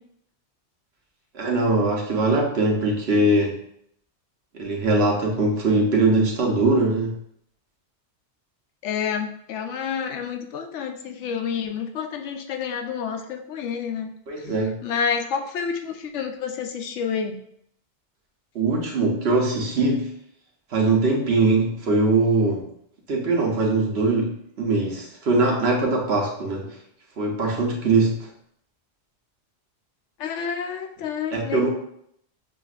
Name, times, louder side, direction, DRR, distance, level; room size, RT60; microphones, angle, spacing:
voice 1, 1.3-3.6 4.6-7.2 14.3-14.8 18.5-20.1 20.7-22.7 23.1-26.7 27.2-28.2 31.3-31.7, right 2 dB, 65° right, -1 dB, 1.1 m, -21 dB
voice 2, 8.8-14.5 14.8-17.4 30.2-31.7, left 6 dB, 85° left, 6 dB, 0.9 m, -29 dB
6.4 x 2.5 x 2.4 m, 0.71 s
omnidirectional pair, 1.2 m